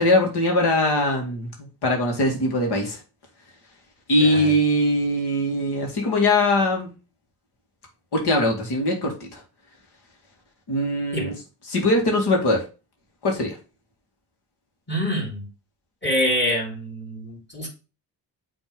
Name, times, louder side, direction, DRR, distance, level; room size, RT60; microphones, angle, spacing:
voice 1, 0.0-3.0 4.1-6.9 8.1-9.4 10.7-11.3 11.7-12.6 13.2-13.6, left 1 dB, 70° left, 1 dB, 2.4 m, -21 dB
voice 2, 4.2-4.6 11.1-11.3 14.9-15.4 16.0-17.7, equal, 25° left, -1 dB, 3.3 m, -26 dB
6.3 x 3.5 x 5.3 m, 0.31 s
cardioid pair, 95°, 41 cm